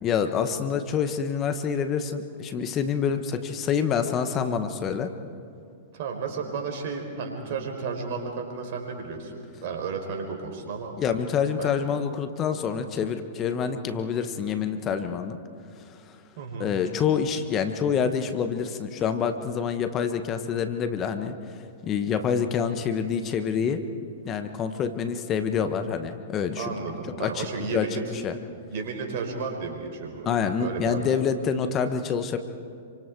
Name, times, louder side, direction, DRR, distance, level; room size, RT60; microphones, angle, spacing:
voice 1, 0.0-5.1 11.0-15.4 15.8-16.2 16.6-23.8 24.2-26.7 27.2-28.4 30.2-32.4, left 7 dB, 30° left, 9 dB, 1.4 m, -27 dB
voice 2, 5.9-10.9 11.6-11.7 16.4-16.7 26.6-28.0 28.7-30.3 30.6-31.1, right 5 dB, 55° right, 3 dB, 4.6 m, -33 dB
27.5 x 25.0 x 4.8 m, 2.4 s
hypercardioid pair, 105°, 0 cm